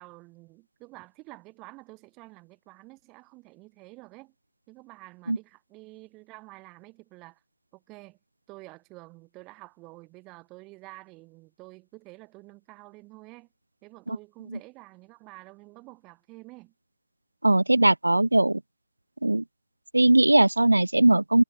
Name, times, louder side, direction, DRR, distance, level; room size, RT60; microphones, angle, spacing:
voice 1, 0.0-4.3 4.7-7.4 7.7-8.2 8.5-13.5 13.8-16.7, right 23 dB, 20° right, 5.2 m, -49 dB
voice 2, 17.4-18.6 19.2-19.4 19.9-21.4, right 2 dB, 85° right, 0.5 m, -20 dB
figure-of-eight pair, 140°, 0 cm